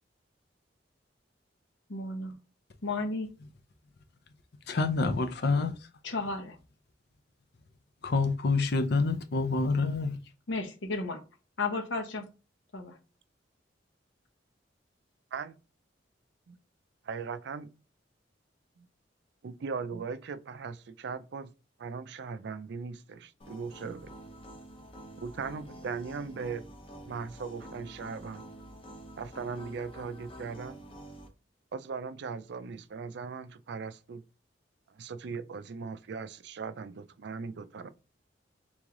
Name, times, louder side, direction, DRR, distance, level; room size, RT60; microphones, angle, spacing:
voice 1, 1.9-2.4 2.8-3.3 6.0-6.6 10.5-11.2 11.6-12.3 12.7-13.0, left 3 dB, 85° left, 0.9 m, -33 dB
voice 2, 4.7-5.7 8.0-10.2, left 3 dB, 60° left, 0.6 m, -27 dB
voice 3, 17.0-17.7 18.8-18.9 19.4-21.5 21.8-24.1 25.2-26.6 27.1-28.5 29.2-30.8 31.7-34.2 34.9-37.9, right 5 dB, 65° right, 0.4 m, -39 dB
sound 1, 23.4-31.3, right 1 dB, 30° left, 0.8 m, -48 dB
3.5 x 3.2 x 3.7 m
head